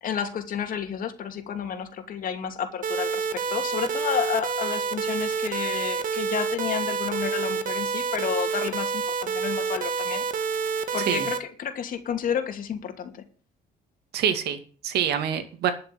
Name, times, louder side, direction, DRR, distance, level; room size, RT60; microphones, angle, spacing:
voice 1, 0.0-10.2 10.9-13.2, left 8 dB, 55° left, 2.6 m, -31 dB
sound 1, 2.8-11.4, right 5 dB, 55° right, 1.6 m, -28 dB
voice 2, 14.1-15.7, right 9 dB, 75° right, 2.4 m, -26 dB
12.0 x 6.9 x 8.6 m
cardioid pair, 110°, 17 cm